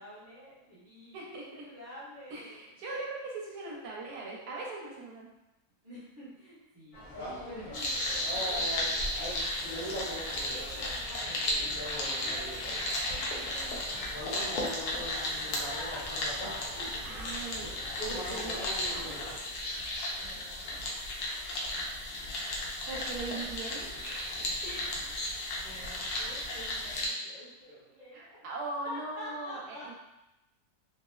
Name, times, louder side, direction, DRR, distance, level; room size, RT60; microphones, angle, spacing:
voice 1, 0.0-1.2 1.5-2.8 5.8-9.0 9.4-11.4 11.9-12.8 13.1-14.7 20.0-20.9 24.6-25.1 25.6-28.4 28.8-29.9, equal, 10° right, -11 dB, 0.7 m, -49 dB
voice 2, 1.1-1.7 2.3-5.3 17.0-17.8 18.1-19.3 22.9-25.0 28.1-29.9, right 2 dB, 75° right, -2 dB, 1.2 m, -40 dB
sound 1, 6.9-19.3, equal, 40° left, 0.8 m, -41 dB
sound 2, 7.7-27.1, left 1 dB, 75° left, 1.1 m, -34 dB
3.3 x 2.0 x 2.2 m, 0.95 s
omnidirectional pair, 1.7 m